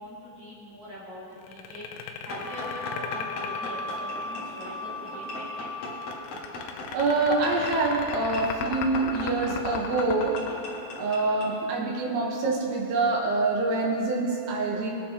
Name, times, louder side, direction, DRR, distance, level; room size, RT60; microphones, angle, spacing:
voice 1, 0.0-5.7, equal, 45° right, -8 dB, 3.2 m, -43 dB
sound 1, 1.4-4.6 6.0-11.5, left 6 dB, 90° left, 3.1 m, -37 dB
sound 2, 2.3-11.5, left 2 dB, 50° left, 2.1 m, -39 dB
Wind instrument woodwind instrument, 2.4-6.5, left 2 dB, 65° left, 3.1 m, -37 dB
voice 2, 6.6-10.4 11.0-14.9, right 3 dB, 75° right, -2 dB, 1.6 m, -26 dB
21.0 x 8.4 x 3.0 m, 2.8 s
omnidirectional pair, 5.2 m